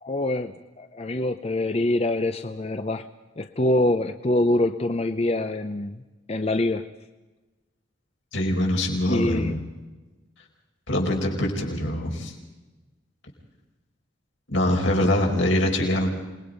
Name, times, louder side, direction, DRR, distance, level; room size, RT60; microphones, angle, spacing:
voice 1, 0.0-3.1 3.4-6.0 6.3-6.8 9.1-9.5, left 1 dB, 30° left, 8 dB, 0.6 m, -25 dB
voice 2, 8.3-9.6 10.9-12.3 14.5-16.1, left 1 dB, 75° left, 1 dB, 5.0 m, -23 dB
27.5 x 20.5 x 5.3 m, 1.2 s
head